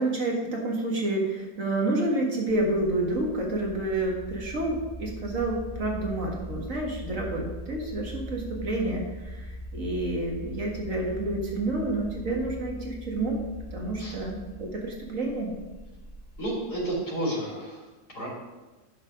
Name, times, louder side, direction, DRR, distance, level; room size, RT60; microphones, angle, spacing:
voice 1, 0.0-13.4 13.7-15.5, right 2 dB, 55° right, -1 dB, 2.1 m, -29 dB
sound 1, 2.5-16.9, equal, 45° left, 1.9 m, -41 dB
voice 2, 16.4-17.9 18.1-18.3, right 1 dB, 75° left, -5 dB, 3.8 m, -31 dB
9.7 x 6.7 x 5.2 m, 1.2 s
omnidirectional pair, 1.7 m